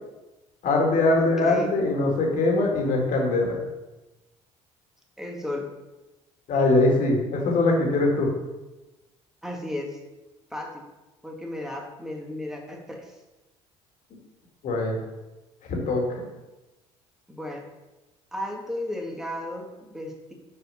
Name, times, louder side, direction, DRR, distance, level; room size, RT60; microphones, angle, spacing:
voice 1, 0.6-3.6 6.5-8.3 14.6-15.0 15.7-16.0, left 2 dB, 60° left, 0 dB, 2.1 m, -22 dB
voice 2, 1.2-1.8 5.2-5.7 9.4-10.0 10.5-10.8 11.2-13.1 17.3-17.6 18.3-20.3, left 1 dB, 5° right, 0 dB, 1.9 m, -34 dB
6.4 x 4.6 x 5.6 m, 1.1 s
hypercardioid pair, 60°, 15 cm